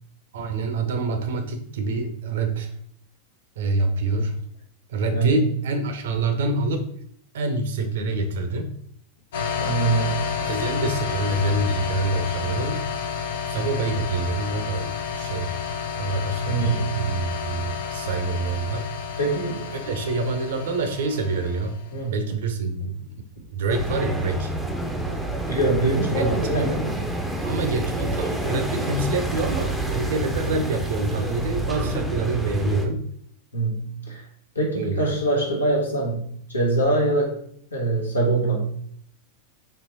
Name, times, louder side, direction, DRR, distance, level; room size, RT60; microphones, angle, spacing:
voice 1, 0.3-2.7 3.6-4.3 4.9-7.0 7.3-8.7 10.4-12.9 13.5-15.6 15.9-18.9 19.9-21.8 22.1-23.1 23.5-24.5 26.1-26.7 27.4-33.0 34.7-35.1, right 2 dB, 60° right, 6 dB, 0.6 m, -26 dB
sound 1, 9.3-21.9, left 6 dB, 60° left, 0.6 m, -30 dB
voice 2, 9.6-10.5 16.5-17.2 19.2-19.7 21.9-22.2 25.5-27.0 33.5-34.3 34.5-37.4 37.7-38.8, right 2 dB, 80° left, -1 dB, 1.1 m, -24 dB
sound 2, 23.7-32.9, right 1 dB, 5° right, 0.6 m, -28 dB
4.3 x 3.1 x 3.0 m, 0.64 s
figure-of-eight pair, 90°, 0 cm